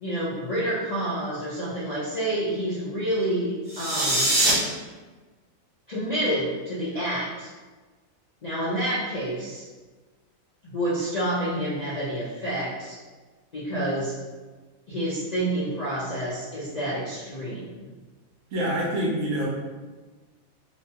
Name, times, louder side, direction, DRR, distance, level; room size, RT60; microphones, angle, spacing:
voice 1, 0.0-4.3 5.9-7.5 8.4-9.6 10.6-13.0 13.5-14.1 14.9-17.9, right 1 dB, 70° left, -9 dB, 0.4 m, -28 dB
sound 1, 3.7-4.5, right 1 dB, 35° right, 0.7 m, -22 dB
voice 2, 18.5-19.5, equal, 85° right, -5 dB, 1.2 m, -26 dB
3.1 x 2.1 x 2.7 m, 1.3 s
omnidirectional pair, 1.4 m